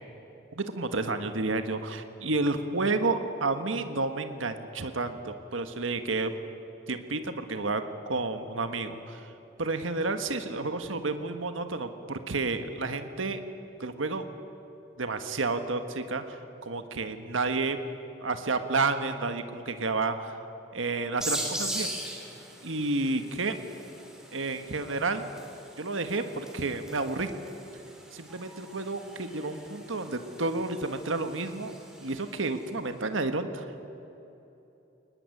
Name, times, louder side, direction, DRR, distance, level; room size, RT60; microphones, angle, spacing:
voice 1, 0.5-6.3 6.9-9.3 9.6-13.4 13.8-14.3 15.0-17.8 18.2-20.3 20.7-21.9 22.6-23.6 24.3-25.3 25.8-27.3 28.1-31.7 32.0-33.9, right 3 dB, 85° right, 8 dB, 1.4 m, -30 dB
sound 1, 21.2-32.6, right 1 dB, 5° right, 3.2 m, -40 dB
23.0 x 19.5 x 9.7 m, 2.9 s
head